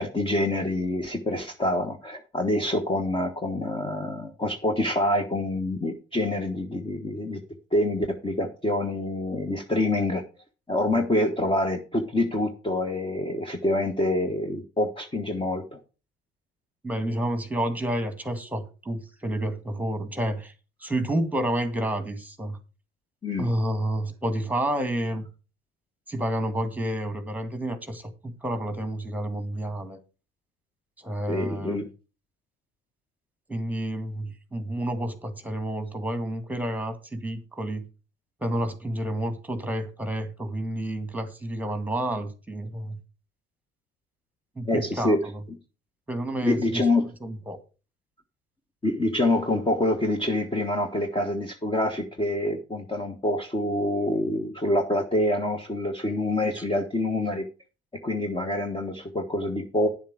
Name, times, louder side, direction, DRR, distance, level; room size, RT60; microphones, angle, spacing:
voice 1, 0.0-7.4 7.7-10.2 10.7-15.8 23.2-23.5 31.3-31.9 44.7-45.2 46.4-47.0 48.8-57.4 58.0-59.9, left 1 dB, 15° left, 1.4 m, -26 dB
voice 2, 16.8-20.5 20.8-22.6 23.4-25.3 26.1-30.0 31.0-31.8 33.5-37.9 38.4-43.0 44.6-45.4 46.1-46.9 47.2-47.6 56.6-56.7, right 1 dB, 5° right, 2.0 m, -30 dB
10.0 x 7.3 x 4.9 m
figure-of-eight pair, 60°, 34 cm